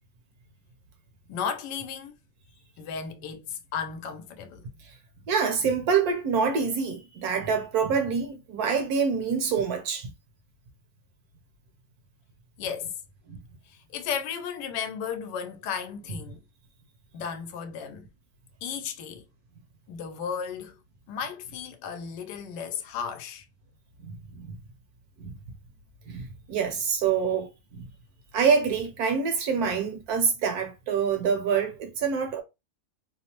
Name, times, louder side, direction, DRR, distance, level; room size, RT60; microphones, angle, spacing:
voice 1, 1.3-2.2 2.8-4.7 12.6-12.9 13.6-16.4 17.1-18.1 18.6-19.3 19.9-20.8 21.1-23.5, left 7 dB, 90° left, 1.2 m, -34 dB
voice 2, 5.3-10.1 13.3-13.4 24.0-24.5 25.2-25.4 26.1-27.5 27.7-27.9 28.3-32.4, right 6 dB, 70° right, 1.2 m, -26 dB
2.9 x 2.0 x 2.8 m
omnidirectional pair, 1.8 m